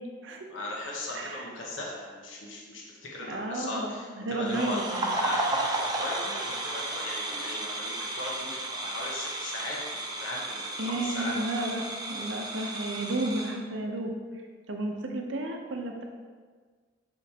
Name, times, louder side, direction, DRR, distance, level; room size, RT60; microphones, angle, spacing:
voice 1, 0.5-4.1 4.4-4.8 5.2-9.8 10.0-11.4, left 1 dB, 85° left, -3 dB, 1.0 m, -38 dB
voice 2, 1.1-1.5 3.3-5.2 10.8-14.1 14.7-16.0, right 2 dB, 70° right, 3 dB, 0.7 m, -32 dB
sound 1, 4.5-13.6, right 2 dB, 20° right, 0.6 m, -33 dB
6.3 x 5.1 x 2.9 m, 1.5 s
head